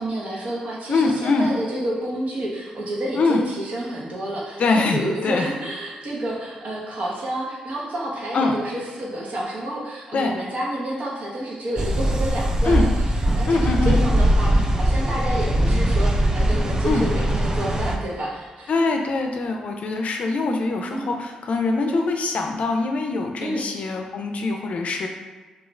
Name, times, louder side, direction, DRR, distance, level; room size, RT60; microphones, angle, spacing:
voice 1, 0.0-13.1 13.4-18.7 20.9-21.2 21.9-22.0 23.4-23.6, right 1 dB, 65° right, -4 dB, 0.8 m, -29 dB
voice 2, 0.9-1.5 3.1-3.4 4.6-5.5 8.3-8.6 10.1-10.4 12.6-12.9 13.5-14.0 16.8-17.0 18.7-25.1, left 3 dB, 60° left, 3 dB, 0.4 m, -23 dB
sound 1, 11.8-18.0, right 1 dB, 25° right, 0.4 m, -21 dB
2.4 x 2.4 x 3.1 m, 1.3 s
supercardioid pair, 60°, 3 cm